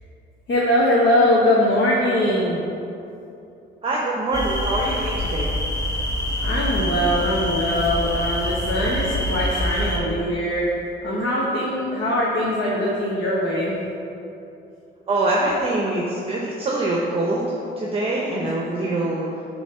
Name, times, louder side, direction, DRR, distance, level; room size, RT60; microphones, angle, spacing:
voice 1, 0.5-2.6 6.4-10.7 11.0-13.8 18.4-18.5, left 1 dB, 65° left, -6 dB, 1.2 m, -21 dB
voice 2, 3.8-5.5 15.1-19.3, right 2 dB, 30° right, -4 dB, 0.8 m, -24 dB
sound 1, 4.3-10.0, equal, 15° left, 1.2 m, -25 dB
7.3 x 3.2 x 5.5 m, 2.8 s
cardioid pair, 90°, 20 cm